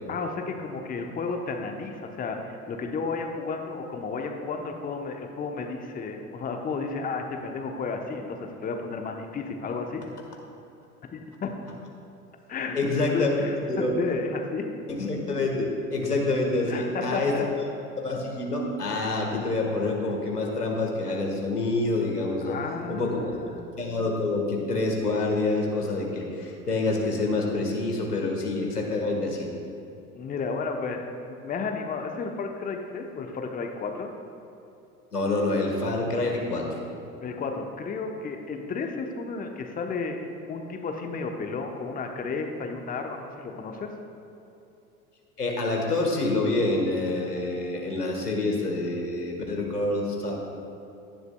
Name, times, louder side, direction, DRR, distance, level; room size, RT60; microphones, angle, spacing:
voice 1, 0.1-10.0 11.1-11.5 12.5-14.7 16.7-17.5 22.4-23.6 30.1-34.1 37.2-40.2 40.5-43.9, left 4 dB, 20° left, 3 dB, 0.9 m, -32 dB
voice 2, 12.7-13.3 13.7-13.9 14.9-17.3 18.0-22.6 22.9-23.3 23.8-29.5 35.1-36.7 45.4-50.4, left 2 dB, 85° left, 0 dB, 1.7 m, -27 dB
16.5 x 11.0 x 2.3 m, 2.8 s
figure-of-eight pair, 80°, 45 cm